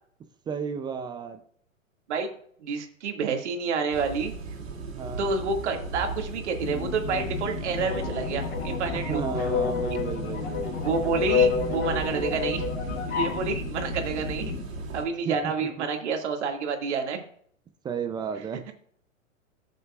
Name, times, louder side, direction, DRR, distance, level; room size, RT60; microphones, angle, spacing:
voice 1, 0.5-1.4 4.9-5.3 8.9-10.7 15.3-15.5 17.8-18.7, right 6 dB, 10° right, 8 dB, 0.5 m, -33 dB
voice 2, 2.6-4.3 5.2-9.2 10.8-12.6 13.2-14.5 14.9-17.2 18.7-18.8, right 5 dB, 60° right, 4 dB, 2.3 m, -29 dB
sound 1, 3.9-15.0, right 3 dB, 75° right, 2.9 m, -36 dB
sound 2, 6.6-14.6, left 7 dB, 45° left, 1.3 m, -36 dB
sound 3, 7.8-13.4, left 6 dB, 30° left, 4.3 m, -29 dB
19.0 x 6.8 x 2.5 m, 0.63 s
hypercardioid pair, 120°, 39 cm